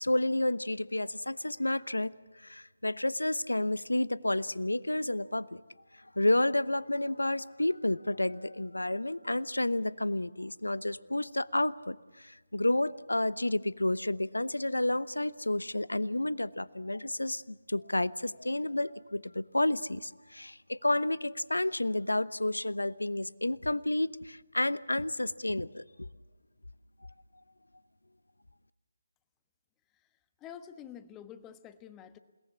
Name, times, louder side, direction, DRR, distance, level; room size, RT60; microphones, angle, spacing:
voice 1, 0.0-2.1 2.4-5.6 6.2-26.1, left 1 dB, 85° left, 18 dB, 0.9 m, -30 dB
voice 2, 30.4-32.2, left 9 dB, 15° left, 11 dB, 1.2 m, -47 dB
28.5 x 18.5 x 7.3 m, 1.3 s
figure-of-eight pair, 150°, 0 cm